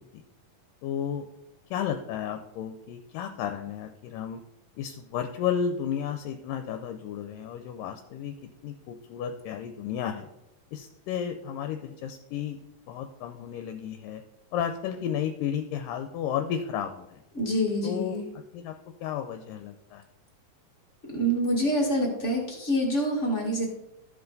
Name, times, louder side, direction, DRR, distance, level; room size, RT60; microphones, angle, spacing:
voice 1, 0.8-1.2 1.7-4.4 4.8-8.4 8.6-10.3 10.7-12.6 12.9-14.2 14.5-17.2 17.8-18.2 18.5-18.7 19.0-20.0, left 8 dB, 80° left, 6 dB, 2.2 m, -33 dB
voice 2, 17.3-18.2 21.1-23.7, equal, 35° left, -2 dB, 1.2 m, -26 dB
14.0 x 5.6 x 3.9 m, 0.90 s
omnidirectional pair, 4.0 m